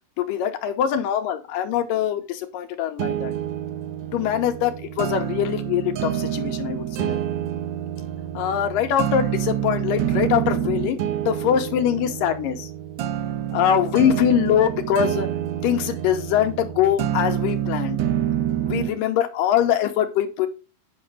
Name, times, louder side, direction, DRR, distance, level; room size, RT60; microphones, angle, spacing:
voice 1, 0.2-3.3 4.1-7.2 8.3-12.7 13.5-15.3 15.6-18.1 18.6-20.5, left 10 dB, 80° left, 7 dB, 2.4 m, -23 dB
sound 1, 3.0-19.0, right 11 dB, 90° right, 1.6 m, -27 dB
8.7 x 5.5 x 4.8 m, 0.31 s
omnidirectional pair, 4.1 m